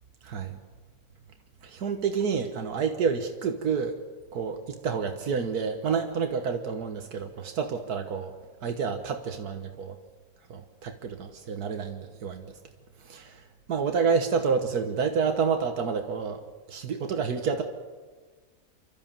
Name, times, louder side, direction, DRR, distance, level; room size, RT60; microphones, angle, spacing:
voice 1, 0.2-0.5 1.6-4.0 4.3-8.3 8.6-9.9 10.5-12.5 13.1-13.4 13.7-16.4 16.7-17.6, right 5 dB, 85° right, 5 dB, 1.8 m, -29 dB
29.0 x 13.0 x 7.4 m, 1.3 s
omnidirectional pair, 1.6 m